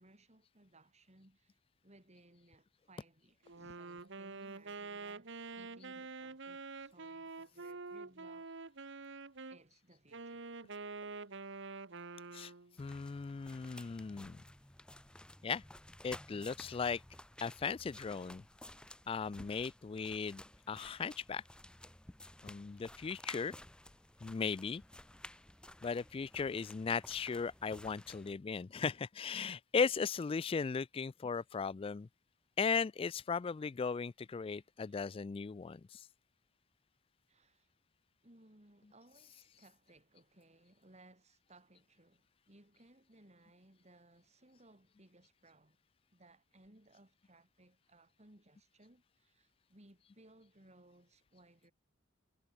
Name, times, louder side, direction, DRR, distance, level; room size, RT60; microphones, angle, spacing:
voice 1, 0.0-1.6 1.8-8.5 8.8-9.1 9.5-10.5 34.4-35.0 37.3-37.7 38.2-45.8 46.1-51.7, right 2 dB, 35° right, 4.3 m, -63 dB
Wind instrument woodwind instrument, 3.4-9.6 10.1-12.7, right 3 dB, 65° right, 1.4 m, -47 dB
voice 2, 12.8-14.4 15.4-15.6 16.0-17.0 17.4-18.4 19.1-20.4 20.7-21.4 22.4-23.5 24.2-24.8 25.8-32.1 32.6-36.1, left 5 dB, 25° left, 0.3 m, -37 dB
sound 1, 12.8-28.3, left 1 dB, 5° left, 0.7 m, -54 dB
head